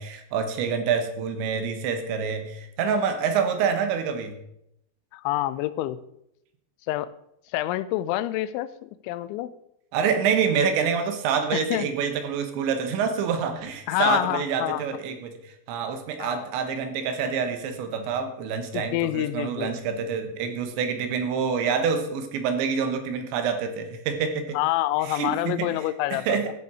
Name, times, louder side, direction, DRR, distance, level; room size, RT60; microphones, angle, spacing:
voice 1, 0.0-4.4 9.9-24.6 25.0-25.7 26.1-26.5, right 6 dB, 80° right, 7 dB, 3.4 m, -27 dB
voice 2, 5.1-6.0 6.9-7.1 7.5-9.5 11.5-11.9 13.9-14.8 16.2-16.5 18.7-19.7 24.5-26.5, left 15 dB, 85° left, 15 dB, 2.9 m, -27 dB
13.5 x 6.8 x 4.8 m, 0.78 s
omnidirectional pair, 5.3 m